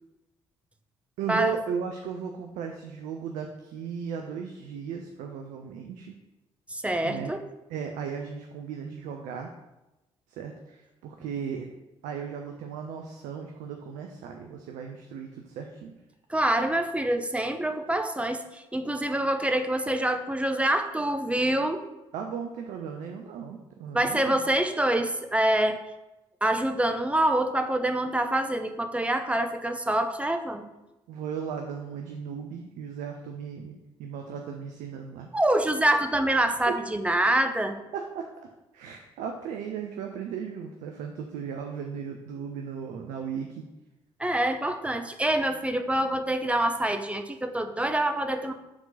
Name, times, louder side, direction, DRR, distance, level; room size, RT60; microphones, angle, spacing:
voice 1, 1.2-6.1 7.0-7.3 7.7-9.5 10.3-11.7 12.0-15.9 22.1-24.4 31.1-35.3 36.7-36.8 37.9-38.5 38.7-43.6, right 7 dB, 60° right, 3 dB, 0.5 m, -36 dB
voice 2, 6.7-7.4 16.3-21.8 23.9-25.8 26.4-30.7 35.3-37.8 44.2-48.5, right 1 dB, 10° right, 7 dB, 0.6 m, -26 dB
4.8 x 3.7 x 5.4 m, 0.99 s
figure-of-eight pair, 40°, 15 cm